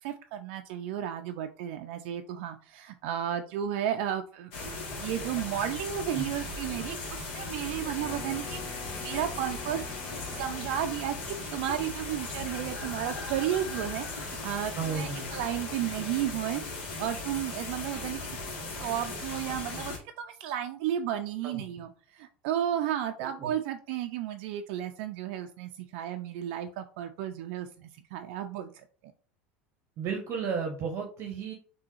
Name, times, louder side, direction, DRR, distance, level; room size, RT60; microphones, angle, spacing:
voice 1, 0.0-4.5 5.0-8.6 9.0-28.8, right 10 dB, 65° right, 6 dB, 0.3 m, -33 dB
sound 1, 4.5-20.0, left 3 dB, 70° left, 1.3 m, -38 dB
Wind instrument woodwind instrument, 7.9-11.4, left 4 dB, 40° left, 0.9 m, -46 dB
voice 2, 14.8-15.3 21.4-21.8 23.2-23.5 30.0-31.5, right 6 dB, 45° right, 3 dB, 0.8 m, -34 dB
3.5 x 2.7 x 2.9 m, 0.41 s
hypercardioid pair, 90°, 6 cm